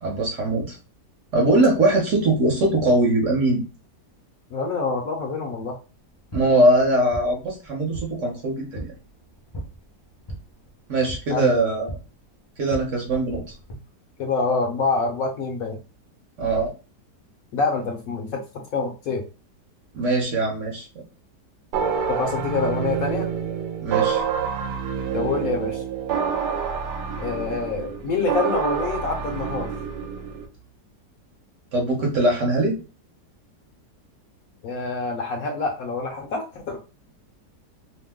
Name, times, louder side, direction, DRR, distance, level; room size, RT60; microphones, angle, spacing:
voice 1, 0.0-0.8 1.3-3.6 6.3-8.9 10.9-11.9 12.6-13.4 16.4-16.7 19.9-20.9 23.8-24.2 31.7-32.8, right 1 dB, 55° right, 0 dB, 1.0 m, -21 dB
voice 2, 4.5-5.8 11.3-11.5 14.2-15.8 17.5-18.4 18.7-19.2 22.1-23.3 25.1-25.8 27.2-29.8 34.6-36.8, left 4 dB, 70° left, 2 dB, 0.9 m, -26 dB
sound 1, 6.0-13.7, right 1 dB, 40° left, 0.4 m, -40 dB
sound 2, 21.7-30.5, right 7 dB, 80° right, 1.1 m, -27 dB
2.8 x 2.1 x 3.4 m, 0.33 s
omnidirectional pair, 1.8 m